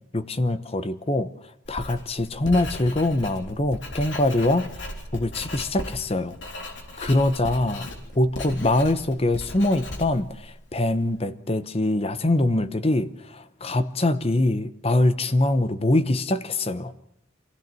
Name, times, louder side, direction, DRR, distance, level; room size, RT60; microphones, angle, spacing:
voice 1, 0.1-1.3 1.7-4.9 5.1-6.4 7.0-7.9 8.1-16.9, left 1 dB, 30° left, 12 dB, 0.9 m, -23 dB
Writing, 1.6-11.1, left 1 dB, 75° left, 3.5 m, -37 dB
25.0 x 16.0 x 7.6 m, 0.79 s
head